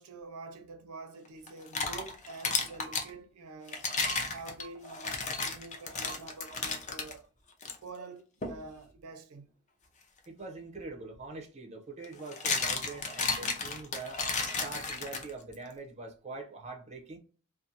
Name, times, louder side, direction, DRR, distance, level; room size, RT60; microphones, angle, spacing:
voice 1, 0.0-3.9 4.2-7.3 7.8-9.5, right 3 dB, 80° right, 0.5 m, -47 dB
sound 1, 1.5-3.1 3.7-7.1 7.6-7.8 8.4-8.6 10.8-10.9 12.0-15.5, left 4 dB, 35° left, 0.4 m, -33 dB
voice 2, 10.3-14.2 14.6-17.2, right 3 dB, 30° right, 0.5 m, -43 dB
2.5 x 2.3 x 2.6 m
head